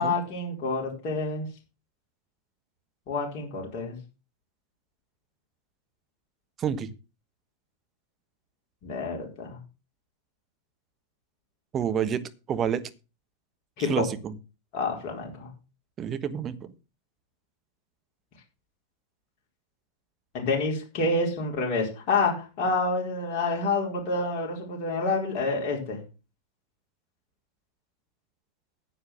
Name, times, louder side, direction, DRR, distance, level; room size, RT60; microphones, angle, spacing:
voice 1, 0.0-1.5 3.1-4.0 8.8-9.6 13.8-14.0 14.7-15.5 20.3-26.0, left 3 dB, 40° left, -1 dB, 4.4 m, -28 dB
voice 2, 6.6-6.9 11.7-12.2 12.5-12.8 13.8-14.3 16.0-16.6, right 8 dB, 25° right, 12 dB, 1.1 m, -28 dB
9.8 x 8.0 x 6.3 m, 0.32 s
figure-of-eight pair, 90°, 0 cm